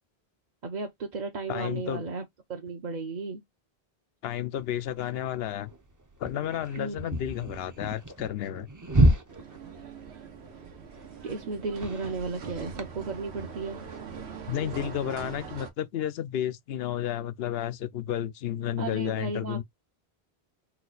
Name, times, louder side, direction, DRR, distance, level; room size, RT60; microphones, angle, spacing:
voice 1, 0.6-2.2 2.5-3.4 6.8-7.1 11.2-13.8 18.8-19.6, right 4 dB, 45° right, 0.8 m, -34 dB
voice 2, 1.5-2.0 4.2-5.7 6.2-8.7 14.5-19.6, left 10 dB, 70° left, 0.8 m, -32 dB
sound 1, 4.6-15.1, right 1 dB, 20° right, 0.6 m, -32 dB
sound 2, 9.3-15.7, right 6 dB, 85° right, 1.2 m, -42 dB
4.3 x 2.3 x 3.9 m
omnidirectional pair, 1.1 m